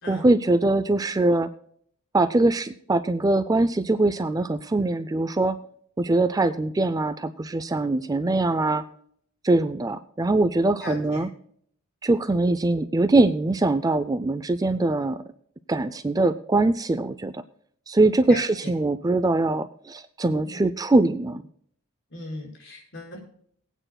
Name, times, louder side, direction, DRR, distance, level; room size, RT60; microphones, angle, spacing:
voice 1, 0.1-1.5 2.1-5.6 6.0-8.8 9.4-11.3 12.0-15.2 15.7-17.4 17.9-21.4, right 2 dB, 15° right, 12 dB, 0.4 m, -22 dB
voice 2, 10.8-11.2 18.3-18.4 20.4-20.6 22.1-23.2, left 2 dB, 55° left, 0 dB, 4.9 m, -37 dB
22.5 x 9.0 x 2.2 m, 0.63 s
head